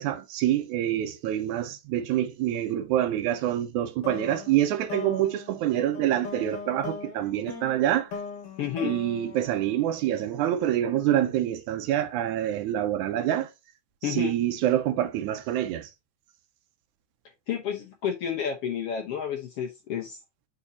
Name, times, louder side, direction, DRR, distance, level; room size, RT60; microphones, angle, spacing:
voice 1, 0.0-8.1 8.8-13.5 14.0-15.9, right 12 dB, 80° right, 2.0 m, -26 dB
sound 1, 4.0-10.5, left 6 dB, 80° left, 2.9 m, -40 dB
voice 2, 8.6-8.9 14.0-14.3 17.5-20.2, left 8 dB, 65° left, 1.6 m, -30 dB
8.0 x 4.4 x 2.7 m
omnidirectional pair, 3.6 m